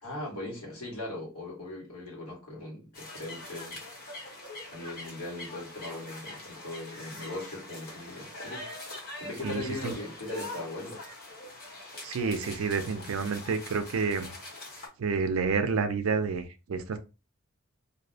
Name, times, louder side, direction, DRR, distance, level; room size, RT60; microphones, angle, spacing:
voice 1, 0.0-3.8 4.7-11.0, left 2 dB, 85° left, 1.4 m, -39 dB
sound 1, 2.9-14.9, left 2 dB, 45° left, 1.0 m, -43 dB
voice 2, 9.4-9.9 12.0-14.3 15.0-17.0, right 5 dB, 65° right, 0.4 m, -29 dB
2.6 x 2.0 x 2.6 m
head